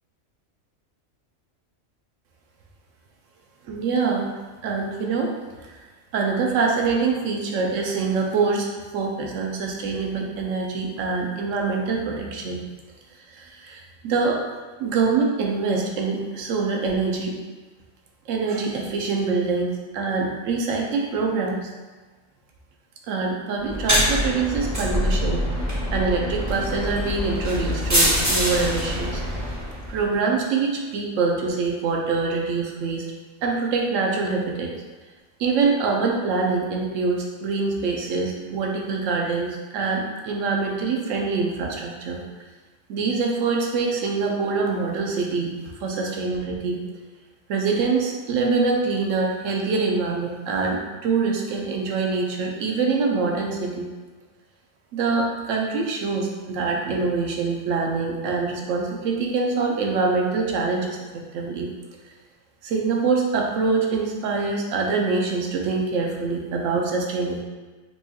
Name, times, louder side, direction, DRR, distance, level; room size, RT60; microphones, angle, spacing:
voice 1, 3.7-4.3 4.6-5.3 5.7-5.8 6.1-8.7 8.9-12.6 13.3-14.4 14.8-17.3 18.3-21.7 23.1-25.4 25.9-29.2 29.9-33.0 33.4-34.7 35.4-42.2 42.9-45.5 45.8-46.8 47.5-53.9 54.9-61.0 61.3-61.7 62.6-67.4, right 4 dB, 75° right, 0 dB, 0.9 m, -24 dB
sound 1, 23.6-30.0, equal, 20° right, 0.6 m, -24 dB
4.3 x 2.8 x 2.3 m, 1.3 s
omnidirectional pair, 1.4 m